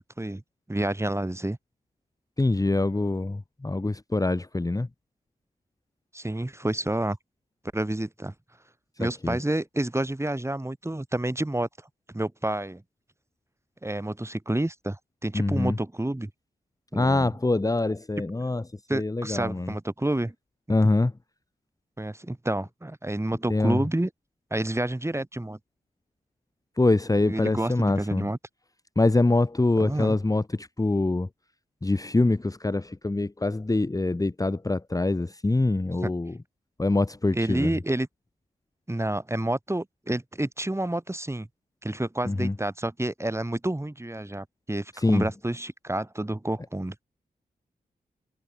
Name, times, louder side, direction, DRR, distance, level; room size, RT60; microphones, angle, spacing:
voice 1, 0.7-1.6 6.1-7.2 7.7-8.3 9.0-11.7 12.1-12.8 13.8-16.3 16.9-17.3 18.9-20.3 22.0-24.1 24.5-25.6 27.3-28.4 29.8-30.2 36.0-36.1 37.3-38.1 38.9-41.5 41.8-46.9, right 1 dB, 15° right, 4.6 m, -29 dB
voice 2, 2.4-4.9 9.0-9.4 15.3-15.8 16.9-18.6 18.9-19.7 20.7-21.1 23.5-23.8 26.8-28.2 29.0-31.3 31.8-36.4 36.8-37.7 42.3-42.5 44.9-45.3, left 2 dB, 20° left, 1.3 m, -24 dB
cardioid pair, 50°, 17 cm